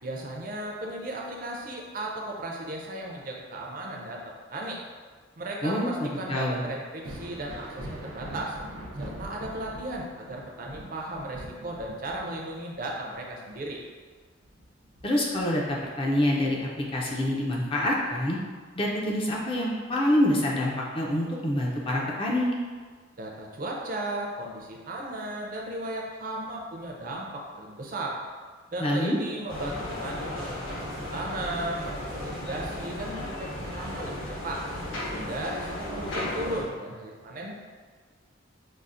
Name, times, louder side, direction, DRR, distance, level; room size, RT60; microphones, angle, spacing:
voice 1, 0.0-4.2 4.5-4.8 5.4-8.6 9.0-13.9 23.2-28.2 28.7-34.6 35.1-37.6, right 1 dB, 45° right, -1 dB, 0.5 m, -35 dB
voice 2, 5.6-6.6 15.0-18.4 18.8-22.5 28.8-29.2, left 1 dB, 25° left, -3 dB, 0.4 m, -26 dB
Thunder, 6.9-16.2 16.6-17.8 19.4-19.5 20.3-20.4, right 1 dB, 85° right, 0.6 m, -43 dB
sound 1, 29.5-36.6, left 1 dB, 75° left, 1.1 m, -35 dB
5.4 x 2.0 x 2.5 m, 1.5 s
head